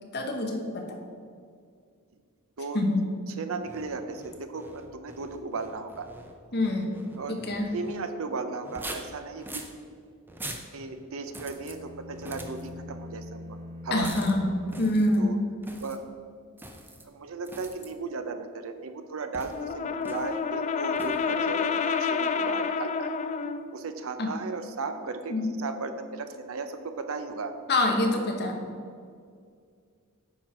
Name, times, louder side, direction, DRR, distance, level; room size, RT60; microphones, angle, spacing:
voice 1, 0.1-0.9 2.7-3.1 6.5-7.0 7.3-7.7 13.9-15.4 24.2-24.3 25.3-25.5 27.7-28.7, left 1 dB, 50° left, 3 dB, 1.1 m, -26 dB
voice 2, 3.3-6.1 7.1-9.6 10.7-13.6 13.8-14.2 15.2-15.4 15.8-16.0 17.0-23.1 23.7-27.5, right 4 dB, 65° right, 8 dB, 0.6 m, -36 dB
sound 1, 3.6-8.0 8.6-9.8 10.3-10.7 11.3-11.8 12.1-12.7 14.0-14.4 14.7-15.2 15.6-16.0 16.6-17.0 17.4-17.9 19.3-19.7 20.0-20.4 21.0-21.3, right 1 dB, 10° right, 0.6 m, -43 dB
sound 2, 11.4-15.7, left 1 dB, 45° right, 2.2 m, -43 dB
Brass instrument, 19.5-23.7, left 5 dB, 35° left, 0.3 m, -29 dB
8.9 x 4.4 x 6.0 m, 2.2 s
head